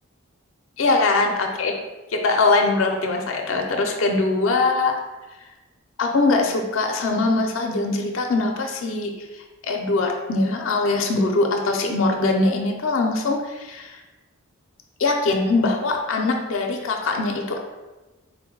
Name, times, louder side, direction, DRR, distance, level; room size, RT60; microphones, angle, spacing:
voice 1, 0.8-1.7 2.1-4.9 6.0-9.1 9.6-14.0 15.0-17.6, left 3 dB, 65° left, 2 dB, 0.5 m, -22 dB
4.0 x 2.1 x 4.4 m, 1.1 s
head